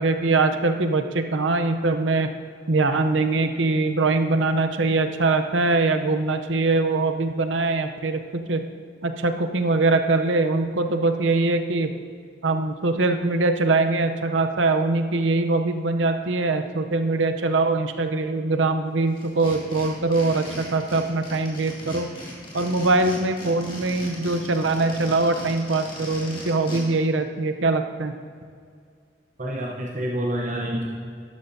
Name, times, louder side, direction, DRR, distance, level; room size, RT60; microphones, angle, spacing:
voice 1, 0.0-2.3 2.7-8.2 8.5-8.6 9.0-11.9 12.4-22.1 22.5-28.1, right 3 dB, 85° right, 7 dB, 0.7 m, -22 dB
sound 1, 19.1-26.8, left 1 dB, 25° left, 2.2 m, -38 dB
voice 2, 29.4-30.9, right 1 dB, 40° right, -2 dB, 0.9 m, -27 dB
12.5 x 11.5 x 2.7 m, 2.1 s
head